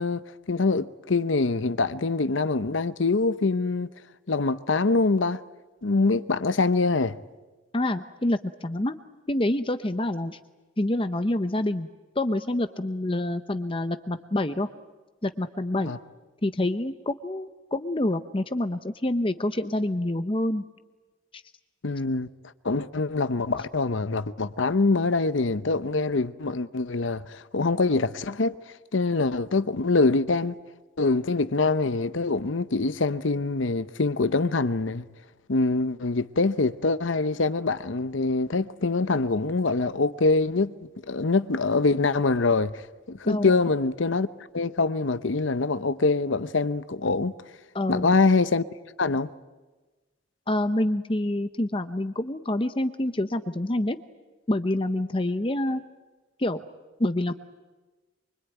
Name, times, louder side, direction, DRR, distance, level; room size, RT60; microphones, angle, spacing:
voice 1, 0.0-3.9 4.3-5.4 5.8-7.2 15.9-16.0 21.8-22.3 22.6-28.5 28.9-30.6 31.0-35.0 35.5-40.7 41.1-42.8 43.1-44.3 44.5-47.3 47.9-48.6 49.0-49.3, left 3 dB, 75° left, 0.8 m, -24 dB
voice 2, 7.7-8.9 9.3-10.4 10.8-11.9 12.2-14.7 15.2-15.9 16.4-20.6 43.2-43.6 47.7-48.2 50.5-54.0 54.5-55.8 56.4-56.6 57.0-57.3, left 1 dB, 25° left, 0.8 m, -27 dB
24.5 x 24.5 x 9.2 m
head